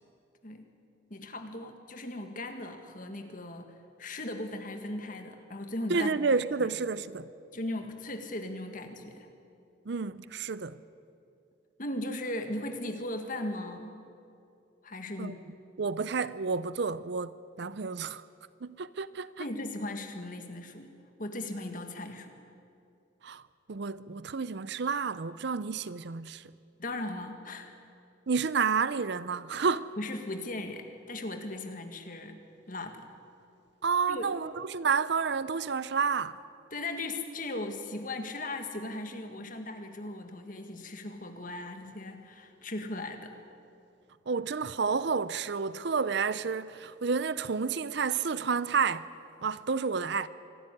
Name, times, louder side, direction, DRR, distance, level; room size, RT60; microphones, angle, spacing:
voice 1, 1.1-3.7 4.0-6.3 6.6-6.7 7.5-9.3 11.8-14.0 14.8-15.4 19.4-20.9 21.2-22.3 26.8-27.7 30.0-32.4 32.7-33.1 34.1-34.3 36.7-43.3, left 1 dB, 40° left, 1.8 m, -38 dB
voice 2, 5.9-7.3 9.9-10.8 15.2-15.3 15.8-17.3 17.6-18.2 18.6-19.4 23.2-23.4 23.7-26.5 28.3-29.9 33.8-36.4 44.3-49.1 49.4-50.3, right 5 dB, 55° right, 0.5 m, -30 dB
25.0 x 12.5 x 9.9 m
head